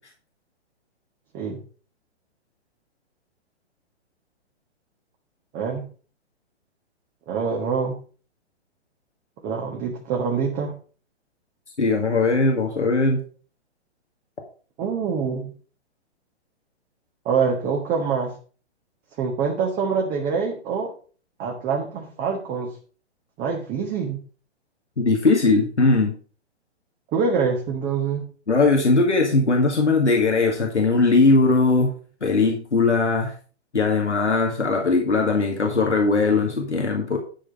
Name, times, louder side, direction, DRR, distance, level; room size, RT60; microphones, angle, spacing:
voice 1, 5.5-5.8 7.3-8.0 9.4-10.7 14.8-15.5 17.2-18.3 19.2-20.9 21.4-22.7 23.4-24.2 27.1-28.2, right 5 dB, 25° right, 1 dB, 1.5 m, -25 dB
voice 2, 11.8-13.2 25.0-26.1 28.5-31.9 32.2-33.3 33.7-37.2, left 3 dB, 90° left, 1 dB, 2.1 m, -19 dB
11.5 x 5.3 x 5.1 m, 0.39 s
figure-of-eight pair, 120°, 34 cm